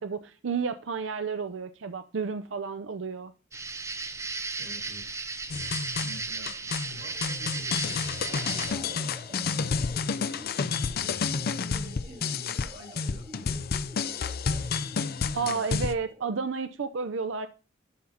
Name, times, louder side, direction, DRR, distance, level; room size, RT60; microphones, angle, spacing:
voice 1, 0.0-3.3 15.3-17.5, right 5 dB, 70° right, 0.6 m, -31 dB
sound 1, 3.5-8.7, right 3 dB, 15° right, 0.5 m, -35 dB
voice 2, 4.6-5.2 6.0-9.6 10.1-13.2 14.9-15.0 15.3-15.7, equal, 85° right, 6.0 m, -48 dB
sound 2, 5.5-15.9, left 5 dB, 50° left, 0.5 m, -30 dB
sound 3, 6.7-16.7, right 1 dB, 30° right, 2.2 m, -50 dB
11.5 x 4.0 x 5.7 m
head